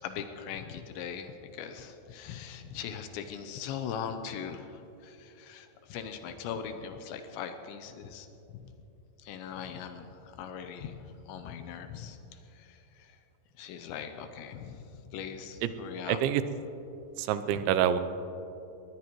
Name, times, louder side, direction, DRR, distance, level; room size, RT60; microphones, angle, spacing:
voice 1, 0.0-8.3 8.5-8.7 9.2-13.2 13.6-16.2 17.5-17.6, left 7 dB, 80° left, 7 dB, 2.9 m, -40 dB
voice 2, 16.1-16.4 17.2-18.0, right 10 dB, 80° right, 12 dB, 2.9 m, -26 dB
21.5 x 19.0 x 3.1 m, 2.9 s
omnidirectional pair, 5.4 m